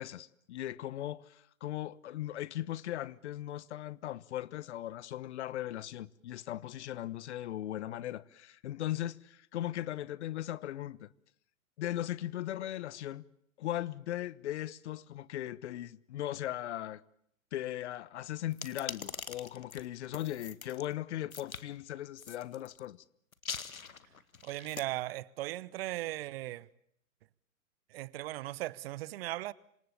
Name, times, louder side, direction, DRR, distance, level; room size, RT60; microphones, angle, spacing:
voice 1, 0.0-11.1 11.8-13.2 13.6-17.0 17.5-23.0, left 13 dB, 55° left, 1.2 m, -38 dB
sound 1, 18.5-20.8 21.3-21.6 22.2-22.8 23.3-24.8, left 6 dB, 80° left, 2.0 m, -43 dB
voice 2, 24.4-26.7 27.9-29.5, right 16 dB, 45° right, 1.1 m, -38 dB
27.0 x 26.5 x 6.9 m
figure-of-eight pair, 110°, 41 cm